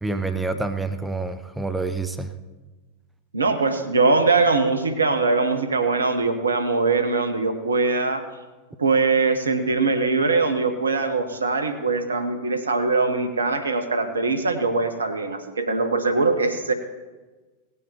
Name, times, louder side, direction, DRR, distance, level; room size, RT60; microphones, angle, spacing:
voice 1, 0.0-2.3, right 3 dB, 5° right, 8 dB, 0.7 m, -27 dB
voice 2, 3.3-8.2 8.8-16.7, right 3 dB, 75° right, 8 dB, 1.0 m, -22 dB
17.5 x 8.4 x 4.4 m, 1.3 s
figure-of-eight pair, 90°, 0 cm